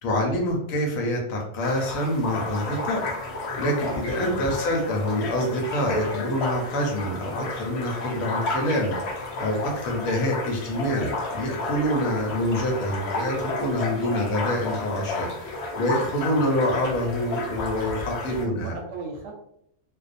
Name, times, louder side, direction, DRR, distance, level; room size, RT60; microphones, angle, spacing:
voice 1, 0.0-18.7, equal, 80° left, 1 dB, 1.1 m, -26 dB
sound 1, 1.6-18.5, left 2 dB, 65° left, 0.7 m, -32 dB
voice 2, 4.2-4.6 14.0-14.3 18.3-19.3, right 4 dB, 70° right, 1 dB, 0.8 m, -38 dB
2.6 x 2.1 x 2.5 m, 0.76 s
omnidirectional pair, 1.4 m